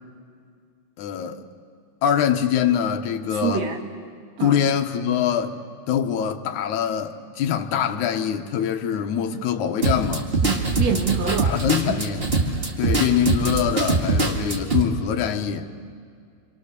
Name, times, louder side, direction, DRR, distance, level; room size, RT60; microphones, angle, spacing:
voice 1, 1.0-1.4 2.0-3.7 4.4-5.6 5.9-10.3 11.4-12.3 12.8-15.7, left 8 dB, 75° left, 2.5 m, -24 dB
voice 2, 3.3-3.8 4.4-4.6 10.4-11.5 11.9-12.0, right 7 dB, 60° right, 2.9 m, -26 dB
sound 1, 9.8-14.8, right 3 dB, 25° right, 1.6 m, -23 dB
27.0 x 27.0 x 6.7 m
omnidirectional pair, 3.5 m